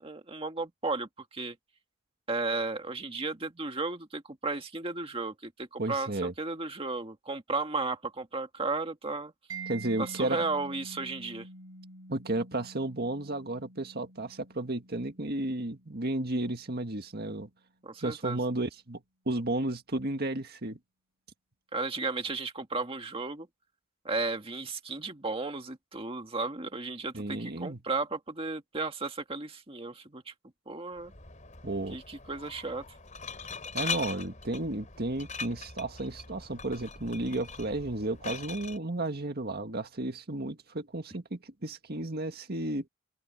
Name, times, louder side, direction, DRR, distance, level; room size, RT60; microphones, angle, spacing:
voice 1, 0.0-1.6 2.3-9.3 10.0-11.5 17.8-18.4 21.7-23.5 24.1-30.3 30.7-31.1 31.9-32.8, right 3 dB, 25° right, 1.8 m, -34 dB
voice 2, 5.8-6.3 9.7-10.4 12.1-17.5 18.0-20.8 27.1-27.8 31.6-32.0 33.7-42.9, right 2 dB, 45° right, 1.9 m, -33 dB
Mallet percussion, 9.5-17.0, right 3 dB, 80° right, 5.1 m, -47 dB
Glass, 31.0-38.8, left 4 dB, 35° left, 3.9 m, -41 dB
open air
head